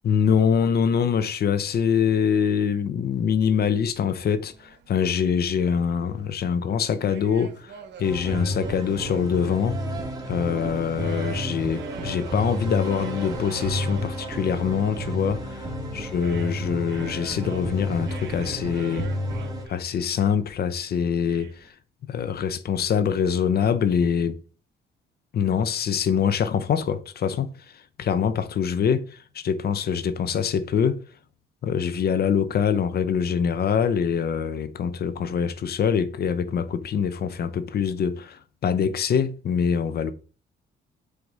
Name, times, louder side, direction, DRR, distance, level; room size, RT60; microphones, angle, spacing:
voice 1, 0.0-9.8 10.3-19.1 19.7-21.7 22.1-24.4 25.3-27.5 28.0-31.0 31.6-40.1, left 7 dB, 55° left, 0.6 m, -24 dB
sound 1, 3.1-21.7, right 8 dB, 60° right, 1.0 m, -45 dB
sound 2, 8.0-19.7, equal, 20° right, 1.7 m, -31 dB
4.9 x 4.7 x 4.0 m
cardioid pair, 90°, 20 cm